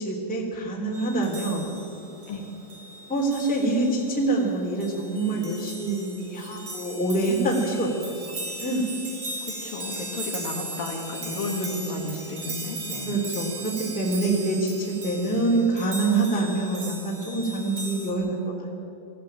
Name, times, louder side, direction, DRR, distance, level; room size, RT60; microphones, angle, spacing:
voice 1, 0.0-1.7 3.1-8.9 11.7-11.8 13.1-14.7 15.0-18.7, right 2 dB, ahead, -2 dB, 2.4 m, -26 dB
sound 1, 0.9-18.1, right 2 dB, 40° right, 3.0 m, -38 dB
voice 2, 9.5-13.2, left 2 dB, 55° left, 0 dB, 3.4 m, -33 dB
20.5 x 15.0 x 8.9 m, 3.0 s
omnidirectional pair, 5.2 m